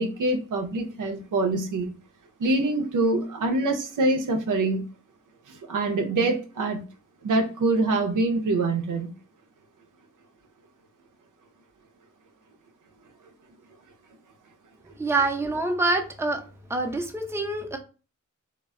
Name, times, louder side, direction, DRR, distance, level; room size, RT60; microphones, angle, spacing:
voice 1, 0.0-1.9 2.4-4.9 5.5-6.8 7.2-9.1, right 2 dB, 90° right, 4 dB, 0.6 m, -25 dB
voice 2, 15.0-16.4 16.7-17.8, right 2 dB, 10° right, 4 dB, 0.5 m, -26 dB
2.1 x 2.1 x 3.5 m, 0.34 s
cardioid pair, 60°, 30 cm